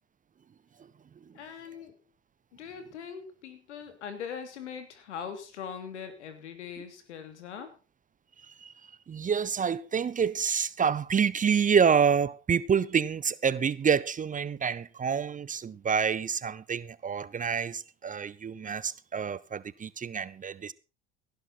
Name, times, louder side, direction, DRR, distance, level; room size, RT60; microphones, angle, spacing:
voice 1, 1.3-2.0 2.5-7.8, left 7 dB, 80° left, 3.0 m, -41 dB
voice 2, 8.4-8.7 9.1-20.7, right 7 dB, 25° right, 0.7 m, -27 dB
17.5 x 11.5 x 4.3 m
hypercardioid pair, 75°, 34 cm